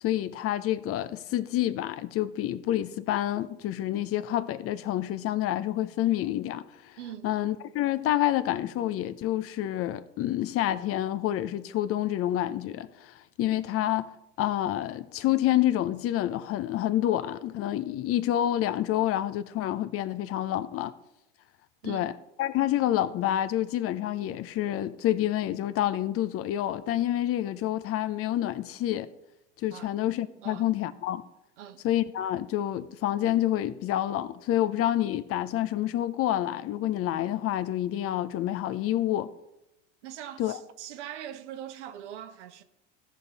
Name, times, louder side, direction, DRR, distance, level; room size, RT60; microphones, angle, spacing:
voice 1, 0.0-7.0 7.2-14.1 14.4-20.9 21.8-22.1 22.4-29.1 29.6-31.2 31.8-39.3 40.4-40.6, left 13 dB, 40° left, 0.6 m, -28 dB
voice 2, 7.0-7.3 21.8-22.1 29.7-29.9 30.4-30.7 31.6-31.9 40.0-42.6, right 10 dB, 75° right, 1.0 m, -42 dB
15.5 x 5.5 x 4.0 m
hypercardioid pair, 85°, 36 cm